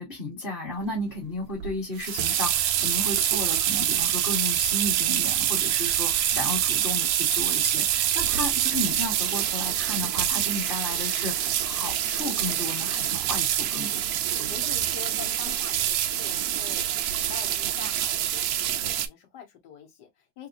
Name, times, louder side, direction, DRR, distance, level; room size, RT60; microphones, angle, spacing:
voice 1, 0.0-14.0, left 2 dB, 35° left, 1.4 m, -34 dB
sound 1, 1.6-19.1, right 11 dB, 70° right, 0.9 m, -26 dB
voice 2, 14.4-20.5, left 7 dB, 75° left, 1.7 m, -44 dB
3.5 x 2.9 x 2.4 m
omnidirectional pair, 1.8 m